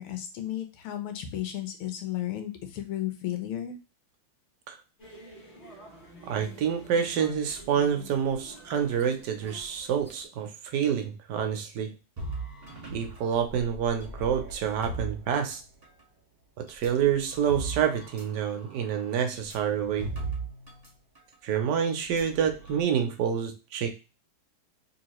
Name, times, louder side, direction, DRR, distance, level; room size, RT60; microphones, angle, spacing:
voice 1, 0.0-3.7, left 12 dB, 90° left, 1.7 m, -34 dB
sound 1, 5.0-10.2, equal, 25° left, 1.8 m, -49 dB
voice 2, 6.3-11.9 12.9-15.6 16.6-20.1 21.4-23.9, right 8 dB, 70° right, 1.0 m, -28 dB
sound 2, 12.2-16.0 16.7-20.9 21.2-21.3 22.0-22.8, right 3 dB, 25° right, 1.1 m, -39 dB
3.7 x 2.9 x 3.0 m
omnidirectional pair, 2.4 m